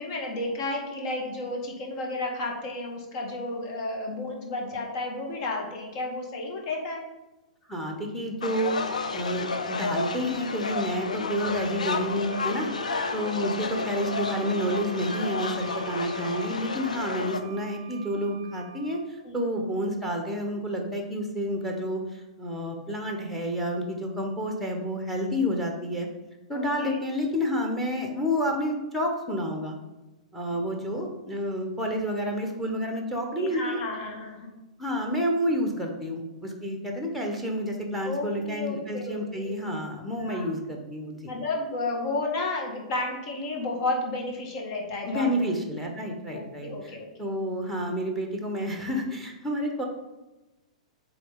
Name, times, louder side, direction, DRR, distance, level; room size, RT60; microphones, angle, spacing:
voice 1, 0.0-7.0 12.5-12.8 19.2-19.4 26.5-27.0 33.3-34.6 38.0-39.6 40.2-40.5 41.3-45.5 46.3-47.3, left 2 dB, 50° left, 0 dB, 1.8 m, -32 dB
voice 2, 7.7-8.7 9.1-12.7 13.1-26.1 26.5-29.7 30.3-33.8 34.8-41.3 45.0-49.8, equal, 5° left, 2 dB, 1.3 m, -29 dB
sound 1, 8.4-17.4, left 4 dB, 85° left, 0.6 m, -31 dB
Wind instrument woodwind instrument, 12.3-19.1, right 8 dB, 40° right, 0.5 m, -47 dB
8.2 x 3.7 x 3.9 m, 1.0 s
hypercardioid pair, 110°, 4 cm